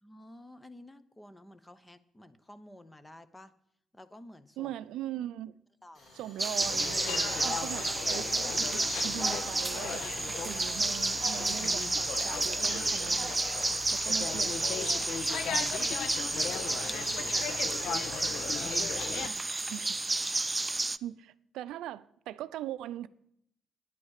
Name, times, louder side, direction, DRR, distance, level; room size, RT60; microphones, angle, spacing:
voice 1, 0.0-3.5 3.9-4.7 5.8-6.2 16.8-17.6 18.3-18.9, left 1 dB, 15° left, 0.9 m, -52 dB
voice 2, 4.6-5.6 6.1-13.3 13.9-15.2 15.5-15.7 19.2-20.4 20.7-23.1, right 12 dB, 90° right, 0.4 m, -41 dB
Tools, 5.9-13.4, left 1 dB, 50° left, 4.9 m, -59 dB
sound 1, 6.4-21.0, right 2 dB, 20° right, 0.4 m, -31 dB
sound 2, 6.6-19.3, left 9 dB, 75° left, 0.5 m, -38 dB
10.0 x 9.5 x 6.5 m
cardioid pair, 90°, 0 cm